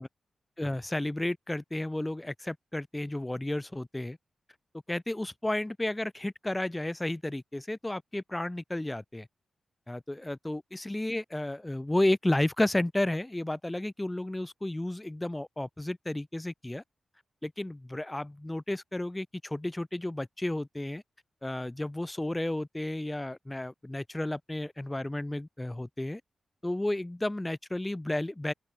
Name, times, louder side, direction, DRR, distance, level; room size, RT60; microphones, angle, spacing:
voice 1, 0.6-4.2 4.9-9.3 9.9-16.8 17.4-21.0 21.4-26.2 26.6-28.5, left 1 dB, 15° left, 3.8 m, -32 dB
open air
cardioid pair, 55°, 0 cm